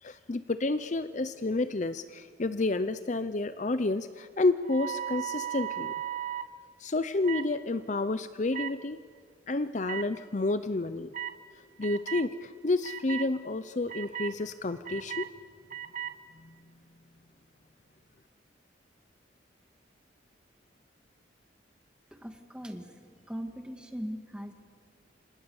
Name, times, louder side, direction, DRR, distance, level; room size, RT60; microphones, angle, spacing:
voice 1, 0.0-5.9 6.8-9.0 9.5-11.1 11.8-15.3 16.4-16.5, left 2 dB, 40° left, 12 dB, 0.6 m, -30 dB
sound 1, 4.6-6.5 7.2-7.5 8.5-8.7 9.8-10.0 11.1-11.3 11.8-12.3 12.8-13.3 13.9-14.3 14.8-15.3 15.7-16.1, right 10 dB, 40° right, 0.9 m, -36 dB
voice 2, 22.1-24.5, equal, 5° right, 5 dB, 1.8 m, -40 dB
30.0 x 26.0 x 7.1 m, 2.1 s
head